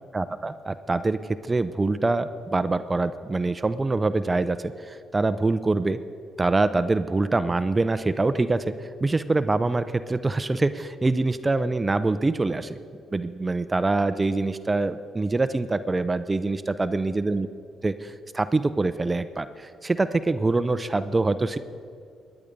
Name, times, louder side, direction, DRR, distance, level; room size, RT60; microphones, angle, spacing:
voice 1, 0.1-1.2 1.5-4.6 4.9-6.0 6.4-8.7 9.0-12.8 13.1-17.5 17.8-21.6, right 3 dB, 20° right, 12 dB, 0.6 m, -24 dB
22.5 x 9.8 x 5.3 m, 2.2 s
cardioid pair, 90°, 0 cm